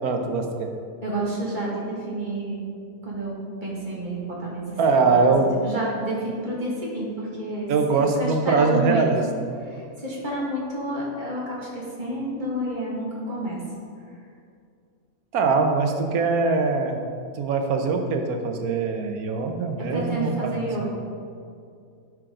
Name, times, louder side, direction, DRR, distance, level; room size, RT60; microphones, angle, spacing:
voice 1, 0.0-0.7 4.8-5.5 7.7-9.2 15.3-17.0 17.3-20.5 20.8-20.9, right 4 dB, 80° right, 4 dB, 1.4 m, -22 dB
voice 2, 1.0-2.7 3.0-7.7 8.2-9.1 9.6-13.6 19.8-20.9, right 1 dB, 35° right, -5 dB, 2.1 m, -30 dB
10.5 x 6.3 x 3.8 m, 2.3 s
omnidirectional pair, 1.5 m